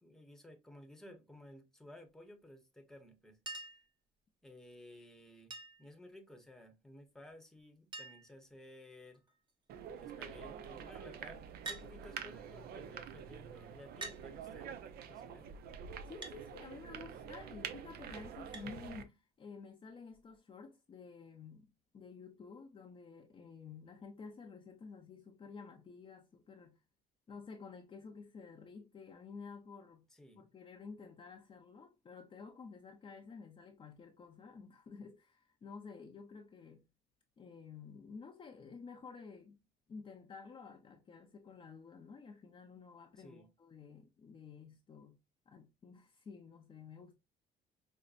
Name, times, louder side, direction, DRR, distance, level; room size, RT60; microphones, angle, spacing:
voice 1, 0.0-3.4 4.4-9.2 10.0-14.7 15.1-15.5 30.1-30.4 43.2-43.5, left 1 dB, 5° left, 0.9 m, -56 dB
Chink clink, 3.5-3.9 5.5-5.9 7.3-7.4 7.6-7.7 7.9-8.4 9.1-9.5 11.6-11.9 13.0-13.1 14.0-14.2 16.2-16.4 18.5-18.7 20.1-20.2, right 3 dB, 30° right, 0.8 m, -46 dB
sound 1, 9.7-19.0, right 7 dB, 65° right, 0.5 m, -47 dB
voice 2, 16.0-26.8 27.3-30.1 30.3-36.9 37.4-39.6 39.9-45.2 45.5-47.1, left 5 dB, 30° left, 0.6 m, -52 dB
5.3 x 2.1 x 2.4 m
cardioid pair, 110°, 17 cm